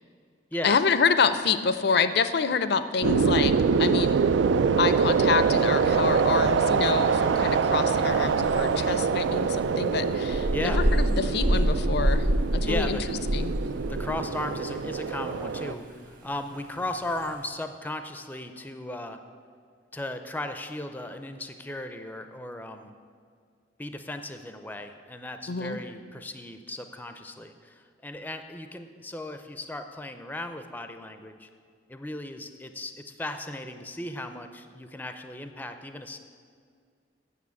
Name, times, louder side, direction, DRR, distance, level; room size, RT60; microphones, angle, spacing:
voice 1, 0.6-3.5 3.8-4.2 4.8-12.3 12.5-13.0 13.3-13.5 25.5-25.8, left 5 dB, 60° left, 12 dB, 0.5 m, -27 dB
sound 1, 3.0-15.7, right 5 dB, 75° right, 0.3 m, -25 dB
sound 2, 8.0-17.4, equal, 50° right, 1.4 m, -28 dB
voice 2, 10.5-10.8 12.6-13.0 13.9-19.2 19.9-22.9 23.8-31.5 31.9-36.2, left 1 dB, 10° left, 8 dB, 0.5 m, -36 dB
8.6 x 6.9 x 8.2 m, 2.1 s
head